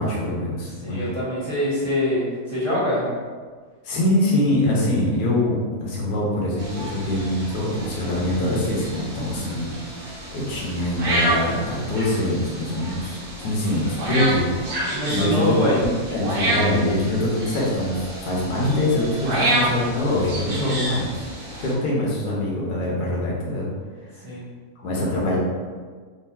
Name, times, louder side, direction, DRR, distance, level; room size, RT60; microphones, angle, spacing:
voice 1, 0.0-1.0 3.8-9.8 10.3-15.5 16.1-21.2 21.6-23.7 24.8-25.4, left 1 dB, 80° left, -4 dB, 1.5 m, -24 dB
voice 2, 0.8-3.1 14.9-15.8 24.2-24.4, left 1 dB, 20° right, -11 dB, 1.2 m, -24 dB
sound 1, 6.6-21.7, right 1 dB, 55° right, 1.2 m, -29 dB
3.9 x 3.3 x 2.7 m, 1.5 s
omnidirectional pair, 1.7 m